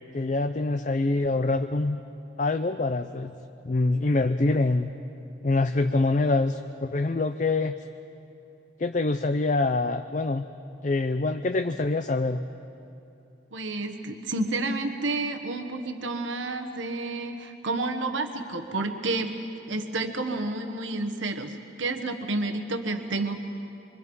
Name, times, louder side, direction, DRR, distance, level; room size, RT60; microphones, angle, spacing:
voice 1, 0.1-2.0 2.4-3.3 3.6-4.9 5.4-7.7 8.8-10.4 10.8-12.4, left 2 dB, 40° left, 8 dB, 0.5 m, -25 dB
voice 2, 13.5-19.3 19.7-23.4, right 2 dB, 85° right, 5 dB, 1.3 m, -30 dB
25.5 x 24.5 x 5.4 m, 2.7 s
head